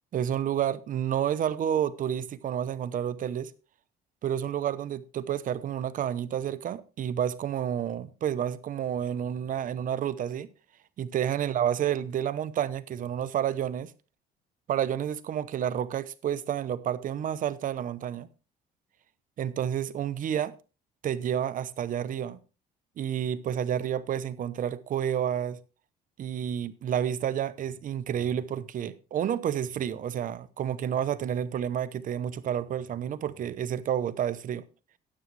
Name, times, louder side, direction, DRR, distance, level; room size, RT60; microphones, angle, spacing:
voice 1, 0.1-3.5 4.2-10.5 11.0-13.9 14.7-18.3 19.4-20.5 21.0-22.4 23.0-25.6 26.2-34.6, right 9 dB, 50° right, 0.9 m, -30 dB
12.5 x 9.8 x 3.3 m
cardioid pair, 110°, 17 cm